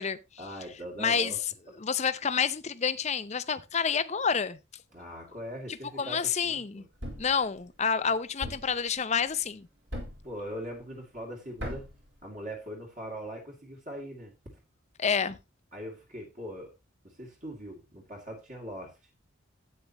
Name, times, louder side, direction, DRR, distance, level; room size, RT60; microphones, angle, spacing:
voice 1, 0.4-1.4 4.9-6.9 10.2-11.9 12.2-14.3 15.7-16.7 17.0-19.0, equal, 35° right, 2.4 m, -41 dB
voice 2, 1.0-1.3 1.8-4.6 6.0-6.8 7.2-9.7 15.0-15.4, left 6 dB, 35° left, 0.6 m, -28 dB
Thump thud, 7.0-7.4 8.4-8.8 9.9-10.3 11.6-12.0, equal, 60° right, 4.1 m, -37 dB
12.5 x 8.5 x 2.9 m
head